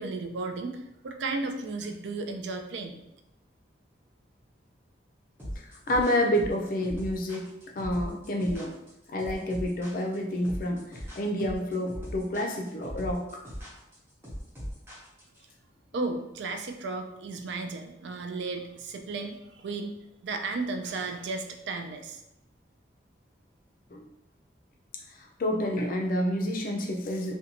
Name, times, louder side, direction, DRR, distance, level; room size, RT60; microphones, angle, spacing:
voice 1, 0.0-3.0 15.9-22.2, right 3 dB, 75° right, 5 dB, 0.3 m, -34 dB
sound 1, 5.4-15.4, equal, 10° right, 0.7 m, -39 dB
voice 2, 5.6-7.5 7.8-8.8 9.1-13.4 23.9-24.0 25.1-27.3, left 1 dB, 50° left, 2 dB, 0.4 m, -29 dB
2.5 x 2.2 x 2.8 m, 0.86 s
head